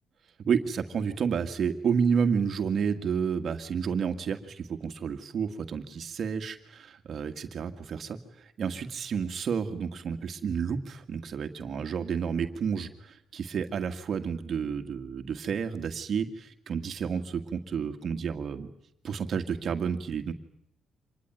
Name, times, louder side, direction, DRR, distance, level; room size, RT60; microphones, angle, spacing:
voice 1, 0.4-18.7 19.0-20.3, right 6 dB, 55° right, 7 dB, 2.0 m, -30 dB
26.0 x 20.0 x 9.3 m, 0.76 s
cardioid pair, 90°, 0 cm